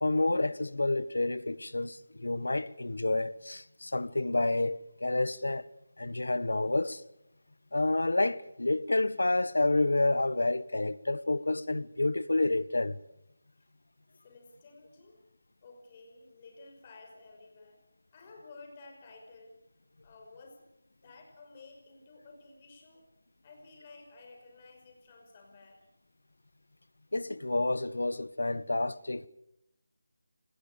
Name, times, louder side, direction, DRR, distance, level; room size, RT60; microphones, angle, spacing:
voice 1, 0.0-5.7 6.0-7.0 7.7-13.0 27.1-29.3, left 2 dB, 85° left, 1.5 m, -29 dB
voice 2, 14.2-15.3 15.6-17.8 18.1-19.6 20.0-20.7 21.0-23.1 23.4-25.9, left 3 dB, 25° left, 5.9 m, -53 dB
28.5 x 21.0 x 7.1 m
figure-of-eight pair, 170°, 0 cm